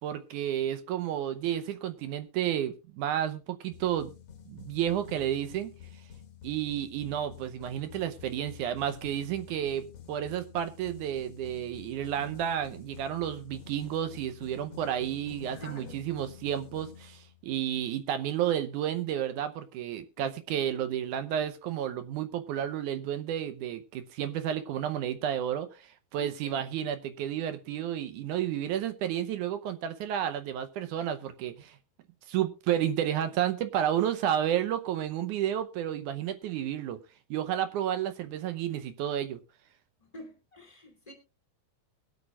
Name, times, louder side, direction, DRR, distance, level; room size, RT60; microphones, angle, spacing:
voice 1, 0.0-4.1 4.5-5.7 6.4-31.8 32.3-37.0 37.3-39.4, right 10 dB, 75° right, 2.0 m, -31 dB
sound 1, 3.7-17.6, left 7 dB, 50° left, 2.1 m, -49 dB
voice 2, 15.5-16.0 26.2-26.6 40.0-41.1, left 1 dB, 10° left, 2.2 m, -47 dB
22.0 x 8.3 x 2.4 m
omnidirectional pair, 4.2 m